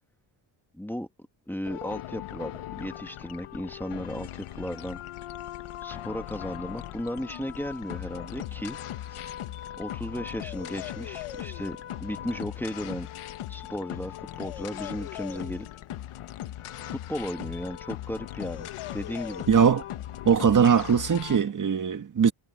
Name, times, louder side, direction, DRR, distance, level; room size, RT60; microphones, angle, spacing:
voice 1, 0.7-1.1 1.5-5.0 5.8-8.8 9.1-9.2 9.8-13.1 13.5-15.7 16.9-19.5, equal, 5° left, 1.7 m, -35 dB
sound 1, 1.6-21.4, left 12 dB, 85° left, 1.4 m, -38 dB
voice 2, 19.5-19.8 20.3-22.3, right 7 dB, 40° right, 1.8 m, -21 dB
cardioid pair, 140°, 49 cm